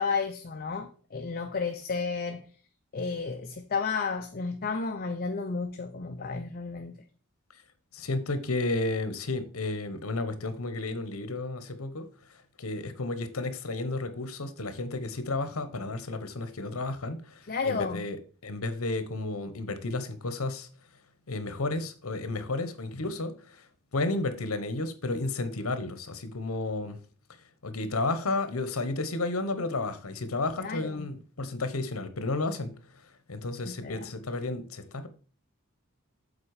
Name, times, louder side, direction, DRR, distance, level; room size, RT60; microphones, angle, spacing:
voice 1, 0.0-2.4 2.9-7.0 17.5-18.0 30.6-31.1 33.6-34.1, left 5 dB, 45° left, 0.6 m, -32 dB
voice 2, 7.9-12.1 12.6-17.2 17.6-18.2 18.4-20.7 21.3-23.3 23.9-27.0 27.6-32.7 33.3-35.1, left 2 dB, 75° left, 1.0 m, -32 dB
7.5 x 4.2 x 4.9 m
head